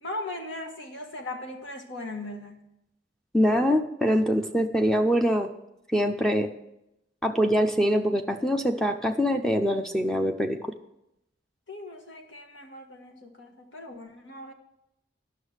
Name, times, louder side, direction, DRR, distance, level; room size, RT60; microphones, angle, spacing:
voice 1, 0.0-2.6 11.7-14.5, left 2 dB, 75° left, 3 dB, 1.6 m, -38 dB
voice 2, 3.3-5.5 5.9-6.5 7.2-10.7, equal, 5° left, 5 dB, 0.5 m, -24 dB
11.5 x 6.3 x 6.4 m, 0.85 s
head